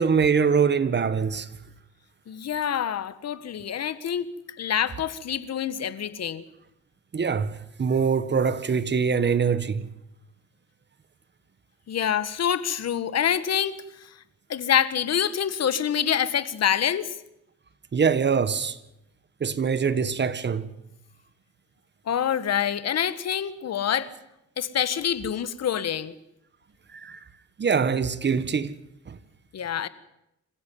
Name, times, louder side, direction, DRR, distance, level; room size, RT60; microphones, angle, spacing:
voice 1, 0.0-1.5 7.1-9.9 17.9-18.8 19.4-20.7 26.9-27.2 27.6-28.7 29.1-29.2, right 6 dB, 35° right, 1.7 m, -23 dB
voice 2, 2.3-6.4 11.9-13.8 14.5-17.2 22.1-24.1 24.6-26.1 29.5-29.9, left 9 dB, 55° left, 1.7 m, -26 dB
26.5 x 15.5 x 9.4 m
cardioid pair, 90°, 30 cm